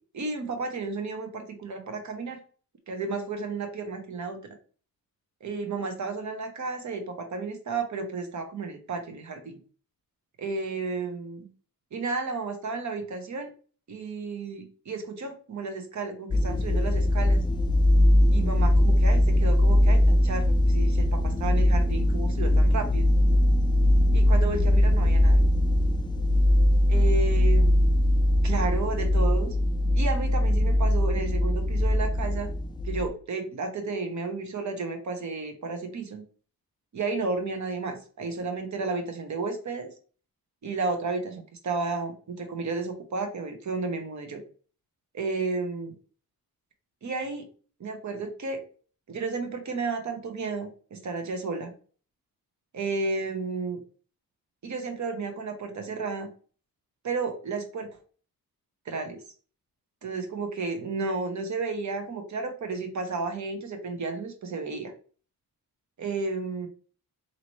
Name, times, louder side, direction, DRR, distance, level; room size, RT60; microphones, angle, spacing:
voice 1, 0.1-2.4 2.9-4.4 5.4-9.6 10.4-11.5 11.9-13.5 13.9-17.4 18.3-23.1 24.1-25.5 26.9-27.7 28.4-29.5 29.9-32.5 32.8-36.2 36.9-39.9 40.6-44.4 45.1-45.9 47.0-47.4 47.8-48.6 49.1-51.7 52.7-53.8 54.6-56.3 57.0-57.9 58.9-59.2 60.0-64.9 66.0-66.7, right 4 dB, 50° right, 5 dB, 1.0 m, -32 dB
sound 1, 16.3-33.1, left 1 dB, 15° left, 0.4 m, -21 dB
4.1 x 2.9 x 3.1 m, 0.40 s
wide cardioid pair, 105°, 36 cm